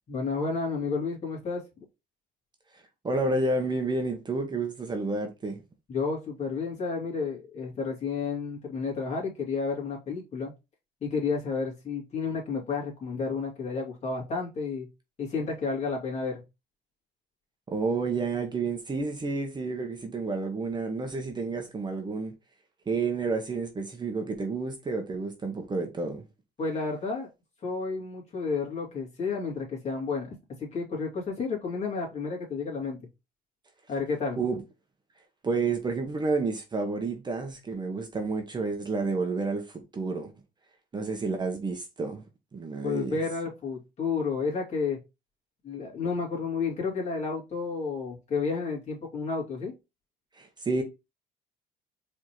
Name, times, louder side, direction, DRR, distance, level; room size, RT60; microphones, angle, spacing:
voice 1, 0.1-1.6 5.9-10.5 11.0-14.9 15.2-16.4 26.6-27.3 27.6-33.0 33.9-34.4 42.8-45.0 45.6-49.7, left 4 dB, 40° left, 2.5 m, -31 dB
voice 2, 3.0-5.6 17.7-22.3 22.9-26.2 34.4-34.6 35.4-40.3 40.9-42.2 42.5-43.2 50.4-50.8, right 3 dB, 25° right, 0.9 m, -30 dB
4.7 x 3.6 x 3.0 m
cardioid pair, 110°, 17 cm